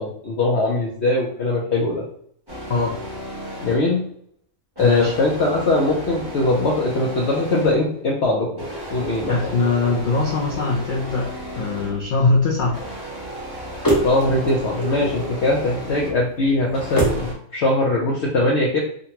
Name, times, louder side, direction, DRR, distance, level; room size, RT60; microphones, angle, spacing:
voice 1, 0.0-2.0 3.6-4.0 4.8-8.5 8.9-9.3 14.0-18.8, left 2 dB, 60° left, -3 dB, 0.8 m, -21 dB
sound 1, 2.5-4.0 4.8-8.0 8.6-12.1 12.6-16.3 16.7-17.3, equal, 20° right, 1.1 m, -34 dB
voice 2, 4.8-5.1 9.3-11.3 11.5-12.8, left 3 dB, 80° left, -2 dB, 0.4 m, -21 dB
sound 2, 8.6-17.3, right 1 dB, 15° left, 0.8 m, -30 dB
3.8 x 2.2 x 2.8 m, 0.64 s
omnidirectional pair, 1.5 m